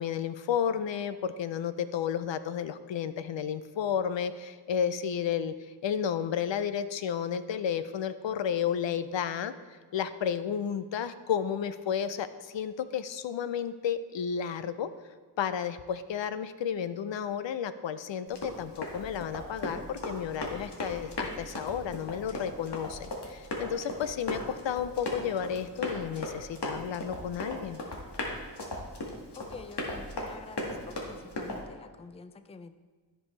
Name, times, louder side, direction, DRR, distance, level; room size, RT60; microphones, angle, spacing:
voice 1, 0.0-5.5 5.8-9.5 9.9-14.9 15.4-27.8, left 8 dB, 80° left, 13 dB, 0.6 m, -32 dB
Run, 18.3-31.6, left 1 dB, 60° left, 1.8 m, -38 dB
voice 2, 29.3-32.8, left 4 dB, 15° left, 11 dB, 0.4 m, -47 dB
13.5 x 5.4 x 3.2 m, 1.5 s
cardioid pair, 65°, 44 cm